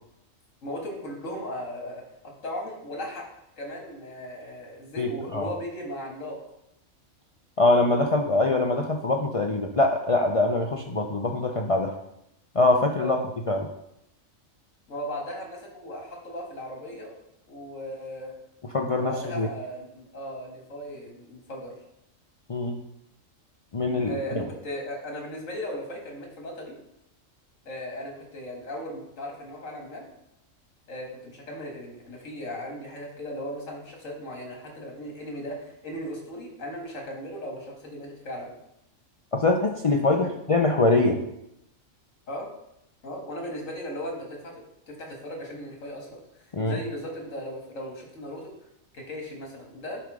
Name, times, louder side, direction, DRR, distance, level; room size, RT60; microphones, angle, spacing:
voice 1, 0.6-3.3 3.6-6.4 13.0-13.2 14.9-17.1 17.5-18.3 19.1-21.7 24.1-26.7 27.7-30.0 30.9-38.5 40.1-40.4 42.3-42.5 43.0-48.5 48.9-50.0, equal, 75° left, 0 dB, 2.2 m, -37 dB
voice 2, 5.0-5.5 7.6-11.9 12.5-13.2 13.5-13.7 18.7-19.5 22.5-22.8 23.7-24.4 39.3-41.2 46.5-46.8, left 2 dB, 60° left, 2 dB, 0.3 m, -23 dB
9.9 x 3.5 x 4.8 m, 0.81 s
omnidirectional pair, 1.4 m